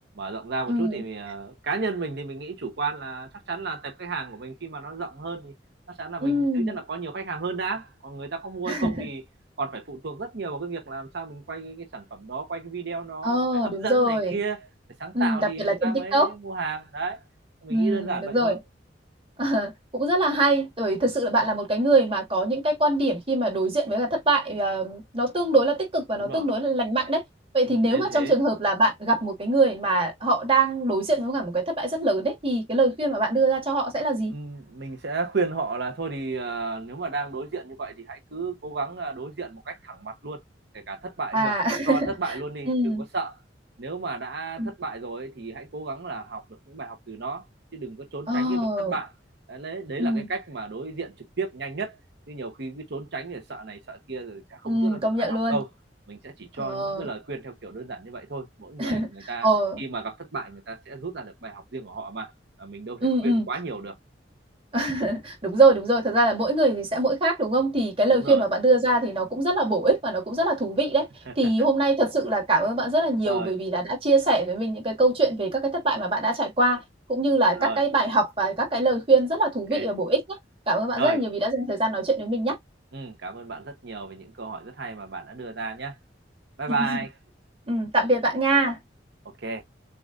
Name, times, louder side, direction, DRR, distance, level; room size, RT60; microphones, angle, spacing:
voice 1, 0.1-5.5 5.9-9.2 9.6-14.7 15.0-17.2 17.6-18.6 26.1-26.5 27.7-28.3 34.3-40.4 40.7-41.6 41.8-43.3 43.8-47.4 47.7-49.1 49.5-52.0 52.3-55.7 56.1-59.5 59.8-62.3 62.6-64.0 68.1-68.4 71.4-71.5 73.3-73.5 77.5-77.8 79.7-79.9 81.0-81.2 82.9-86.0 86.6-87.2 89.4-89.6, right 4 dB, 65° right, 1.0 m, -33 dB
voice 2, 0.7-1.0 6.2-6.8 8.7-9.1 13.2-14.4 15.1-16.3 17.7-18.6 19.4-27.2 27.5-34.3 41.3-42.1 42.7-43.0 44.6-44.7 48.3-48.9 50.0-50.3 54.6-55.6 56.6-57.1 58.8-59.1 59.4-59.8 63.0-63.5 64.7-71.1 71.4-76.8 77.1-80.4 80.7-82.6 86.7-87.0 87.7-88.8, right 2 dB, 30° right, 2.0 m, -23 dB
6.9 x 2.6 x 2.5 m
head